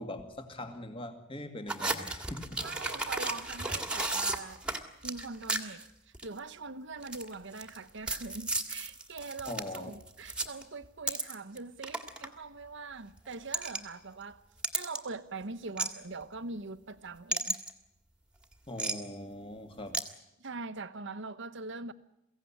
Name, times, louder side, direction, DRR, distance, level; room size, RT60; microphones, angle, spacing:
voice 1, 0.0-2.6 9.5-9.9 18.7-20.0, left 1 dB, 30° left, 2.3 m, -41 dB
sound 1, 1.7-5.9 6.1-6.4 7.0-7.8 8.1-11.6 11.8-12.3 13.3-13.8 14.6-15.0 15.8-15.9 17.3-17.7 18.8-18.9 19.9-20.0, right 2 dB, 5° right, 1.9 m, -33 dB
voice 2, 2.6-4.6 5.0-14.4 14.7-17.6 20.4-21.9, right 4 dB, 65° right, 1.1 m, -42 dB
23.0 x 16.5 x 10.0 m
head